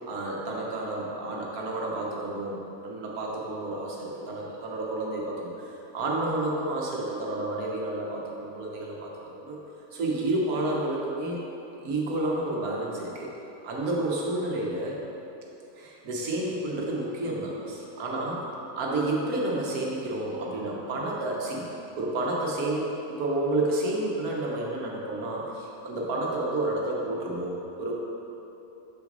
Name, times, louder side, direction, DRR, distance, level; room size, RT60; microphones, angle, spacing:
voice 1, 0.1-9.6 9.9-11.4 11.8-13.3 13.6-15.0 15.7-18.5 18.7-21.7 21.9-27.9, right 2 dB, 85° right, -3 dB, 1.5 m, -30 dB
6.9 x 6.0 x 3.9 m, 3.0 s
omnidirectional pair, 1.5 m